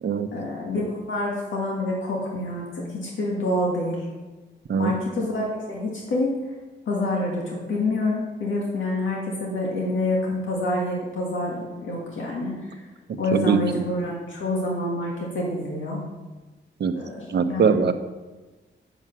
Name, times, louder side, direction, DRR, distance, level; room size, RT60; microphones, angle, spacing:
voice 1, 0.3-4.1 4.8-6.4 6.9-12.9 13.2-16.0 16.9-17.9, left 1 dB, 85° left, -3 dB, 1.9 m, -27 dB
voice 2, 13.3-13.8 16.8-16.9 17.3-17.9, right 6 dB, 60° right, 9 dB, 0.7 m, -21 dB
7.9 x 7.3 x 6.0 m, 1.2 s
wide cardioid pair, 110°, 20 cm